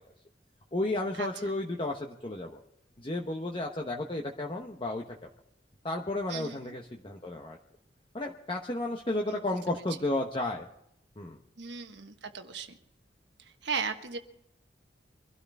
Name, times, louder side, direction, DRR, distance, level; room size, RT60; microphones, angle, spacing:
voice 1, 0.7-2.6 3.0-5.0 5.8-7.6 8.1-10.7 11.2-11.4, left 2 dB, 30° left, 2 dB, 1.0 m, -33 dB
voice 2, 6.3-6.6 9.3-9.4 9.7-9.8 11.6-12.8 13.4-14.2, right 5 dB, 75° right, 6 dB, 1.3 m, -36 dB
24.0 x 12.5 x 3.6 m, 0.80 s
head